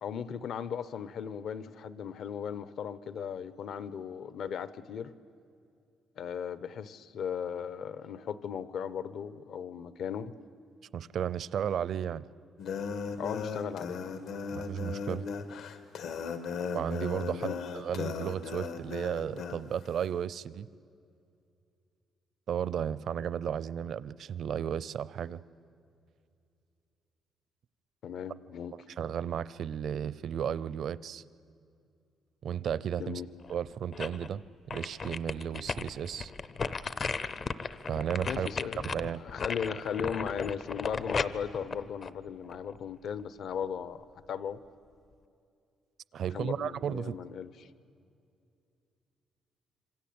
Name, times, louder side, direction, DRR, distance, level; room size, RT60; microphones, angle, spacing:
voice 1, 0.0-5.1 6.2-10.3 13.2-14.0 17.3-17.6 28.0-28.7 33.0-33.3 38.2-44.6 46.3-47.7, left 7 dB, 55° left, 15 dB, 0.9 m, -37 dB
voice 2, 10.9-12.2 14.5-15.3 16.7-20.7 22.5-25.4 29.0-31.2 32.4-33.2 33.5-34.4 34.7-36.3 37.9-38.5 38.8-39.2 46.1-47.2, right 8 dB, 50° right, 19 dB, 0.6 m, -34 dB
sound 1, 12.6-19.6, left 5 dB, 75° left, 1.8 m, -37 dB
sound 2, 33.4-34.3 34.7-42.8 43.2-43.3, left 4 dB, 30° left, 0.6 m, -36 dB
27.0 x 25.0 x 8.7 m, 2.5 s
cardioid pair, 175°, 0 cm